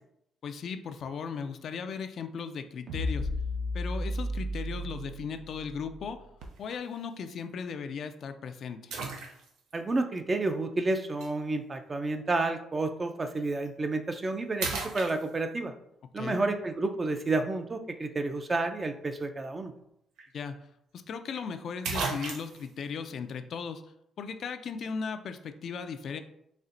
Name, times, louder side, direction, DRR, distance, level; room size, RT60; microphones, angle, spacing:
voice 1, 0.4-3.3 3.7-6.2 6.6-8.9 16.2-16.4 20.3-20.6 20.9-23.8 24.2-26.2, left 6 dB, 60° left, 8 dB, 0.4 m, -37 dB
sound 1, 2.9-6.3, left 1 dB, 60° right, 0.8 m, -34 dB
sound 2, 6.4-6.7 7.4-7.5 8.9-9.7 11.2-11.3 13.5-13.7 14.1-14.3 14.6-15.7 19.8-19.9 20.2-20.3 21.4-21.5 21.8-22.7, right 4 dB, 85° right, 0.6 m, -35 dB
voice 2, 9.7-15.7 16.1-19.7, right 2 dB, 30° right, 7 dB, 0.5 m, -30 dB
4.2 x 3.2 x 2.5 m, 0.76 s
cardioid pair, 90°, 0 cm